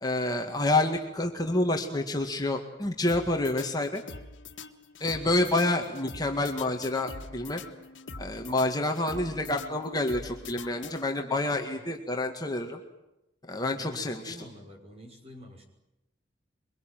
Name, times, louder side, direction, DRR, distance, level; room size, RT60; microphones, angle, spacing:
voice 1, 0.0-4.0 5.0-7.6 8.2-12.8 13.4-14.5, left 2 dB, 20° left, 3 dB, 2.0 m, -28 dB
sound 1, 3.1-11.4, left 3 dB, 85° left, 1.7 m, -44 dB
voice 2, 13.7-15.6, equal, 35° right, 2 dB, 5.6 m, -47 dB
24.0 x 22.5 x 9.2 m, 0.88 s
head